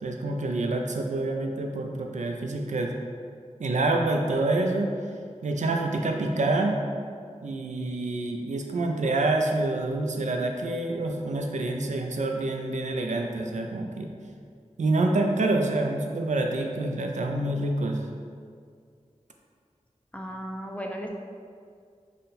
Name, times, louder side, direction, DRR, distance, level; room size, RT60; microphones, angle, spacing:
voice 1, 0.0-2.9 3.6-4.9 5.4-6.8 7.4-14.1 14.8-18.0, right 2 dB, 75° right, 2 dB, 0.4 m, -27 dB
voice 2, 20.1-21.1, equal, 10° left, 1 dB, 0.4 m, -35 dB
3.8 x 2.2 x 4.0 m, 2.2 s
wide cardioid pair, 65°, 13 cm